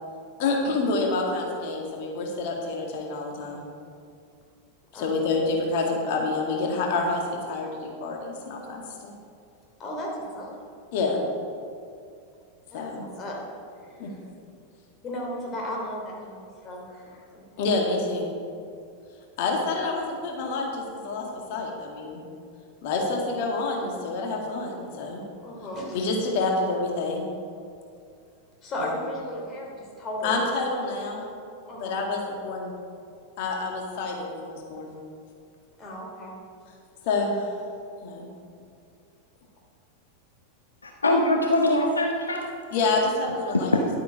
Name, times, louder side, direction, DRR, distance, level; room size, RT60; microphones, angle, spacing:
voice 1, 0.4-3.6 4.9-9.1 10.9-11.2 12.7-13.1 14.0-14.1 17.6-18.3 19.4-22.2 22.8-25.2 25.9-27.3 28.8-29.0 30.2-31.2 31.7-32.7 33.4-34.9 37.0-37.5 38.0-38.3 42.7-43.7, left 3 dB, 50° left, 0 dB, 2.0 m, -28 dB
voice 2, 4.9-5.4 9.8-10.6 12.7-13.4 13.8-13.9 15.0-17.4 25.4-26.0 28.6-30.4 31.7-32.0 35.8-36.3, left 1 dB, 30° left, -2 dB, 2.9 m, -35 dB
voice 3, 40.8-42.5 43.5-43.9, left 1 dB, 75° left, 2 dB, 0.9 m, -23 dB
11.5 x 9.0 x 5.0 m, 2.4 s
figure-of-eight pair, 90°, 0 cm